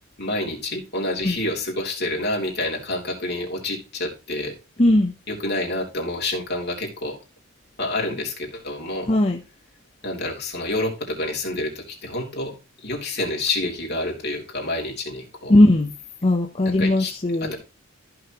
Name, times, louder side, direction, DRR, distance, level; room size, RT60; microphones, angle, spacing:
voice 1, 0.2-4.5 5.3-7.2 7.8-9.2 10.0-15.6 16.6-17.1 17.4-17.6, left 2 dB, 50° left, 3.3 m, -28 dB
voice 2, 4.8-5.1 9.1-9.4 15.5-15.9 16.2-17.5, left 1 dB, 30° left, 0.9 m, -18 dB
14.5 x 6.0 x 3.1 m
head